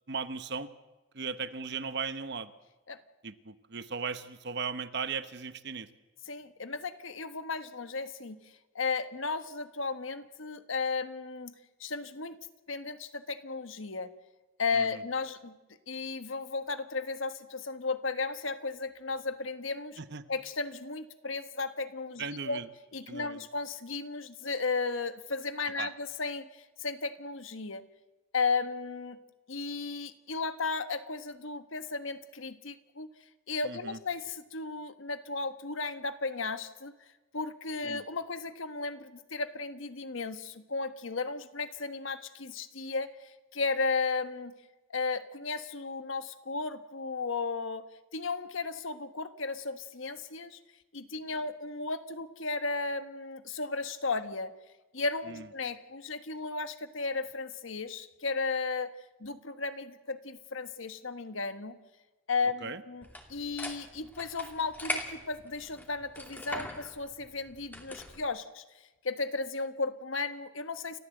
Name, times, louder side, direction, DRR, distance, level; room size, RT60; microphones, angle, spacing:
voice 1, 0.1-0.7 1.1-2.5 3.2-5.9 14.7-15.0 20.0-20.2 22.2-22.7 23.1-23.5 25.8-25.9 33.6-34.0 37.8-38.0 55.3-55.4 62.6-62.8, right 5 dB, 55° right, 12 dB, 1.1 m, -37 dB
voice 2, 6.3-8.4 8.7-11.5 11.8-12.4 12.7-14.1 14.6-15.5 15.9-20.0 20.3-22.6 22.9-27.8 28.3-29.2 29.5-33.1 33.5-36.9 37.3-44.5 44.9-50.6 50.9-54.5 54.9-61.8 62.3-63.0 63.3-68.6 69.0-71.0, left 4 dB, 75° left, 10 dB, 1.3 m, -34 dB
sound 1, 63.0-68.2, left 1 dB, 10° left, 2.4 m, -41 dB
29.5 x 14.0 x 7.9 m, 1.1 s
head